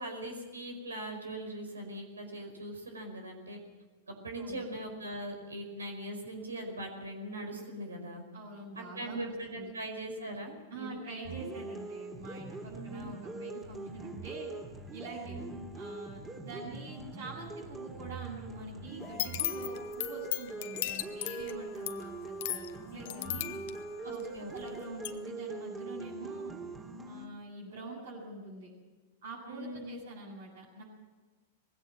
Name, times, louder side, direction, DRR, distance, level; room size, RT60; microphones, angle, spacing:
voice 1, 0.0-3.6 4.1-8.2 8.7-11.0 12.7-13.2 15.2-15.7 16.6-16.8 24.0-24.8 29.5-30.0, right 1 dB, 85° right, 4 dB, 5.1 m, -41 dB
voice 2, 8.3-9.7 10.7-14.5 14.9-15.4 15.7-23.6 24.0-26.6 27.0-28.7 29.2-30.8, right 2 dB, 70° right, -5 dB, 7.2 m, -45 dB
sound 1, 11.2-27.2, right 3 dB, 20° right, 3.6 m, -43 dB
sound 2, 19.0-24.7 25.0-25.1, left 15 dB, 60° left, 1.1 m, -37 dB
20.5 x 16.5 x 7.6 m, 1.3 s
hypercardioid pair, 100°, 0 cm